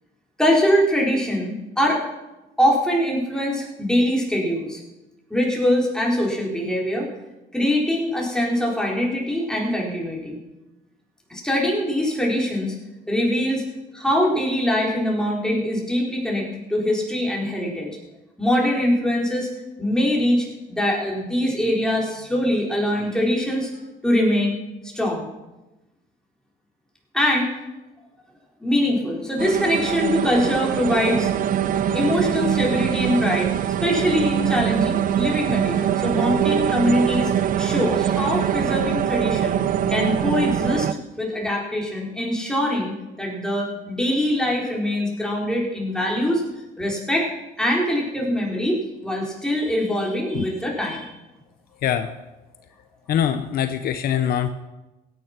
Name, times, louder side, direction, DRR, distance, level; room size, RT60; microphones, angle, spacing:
voice 1, 0.4-2.0 2.6-4.8 5.3-7.1 7.5-10.4 11.3-12.8 13.1-13.6 13.9-18.0 18.4-19.5 19.8-23.7 24.0-24.5 24.8-25.3 27.1-27.5 28.6-31.3 31.9-33.5 33.8-37.3 37.6-39.6 39.9-40.9 41.2-42.9 43.2-46.4 46.8-47.3 47.6-51.1, left 1 dB, 5° left, -2 dB, 4.2 m, -23 dB
sound 1, 29.4-40.9, right 9 dB, 55° right, 0.7 m, -23 dB
voice 2, 51.8-52.1 53.1-54.5, left 9 dB, 65° left, 9 dB, 0.9 m, -23 dB
16.5 x 9.7 x 6.0 m, 1.0 s
cardioid pair, 110°, 17 cm